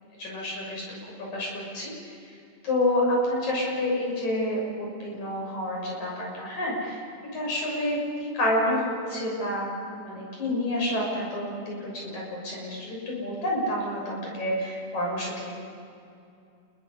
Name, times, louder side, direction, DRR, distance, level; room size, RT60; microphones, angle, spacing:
voice 1, 0.2-0.8 1.2-1.9 2.2-2.4 2.6-7.0 7.3-15.5, left 1 dB, 65° left, -2 dB, 8.4 m, -29 dB
29.5 x 22.5 x 5.6 m, 2.5 s
omnidirectional pair, 3.6 m